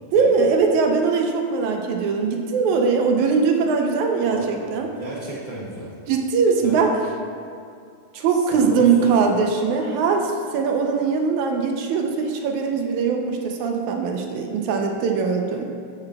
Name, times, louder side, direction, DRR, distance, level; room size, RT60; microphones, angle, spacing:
voice 1, 0.1-4.9 6.1-7.0 8.1-15.6, right 5 dB, 75° right, 3 dB, 1.8 m, -21 dB
voice 2, 4.7-5.9 6.6-6.9 8.3-9.1, right 1 dB, 25° left, -7 dB, 0.8 m, -34 dB
15.0 x 10.5 x 2.3 m, 2.3 s
omnidirectional pair, 4.0 m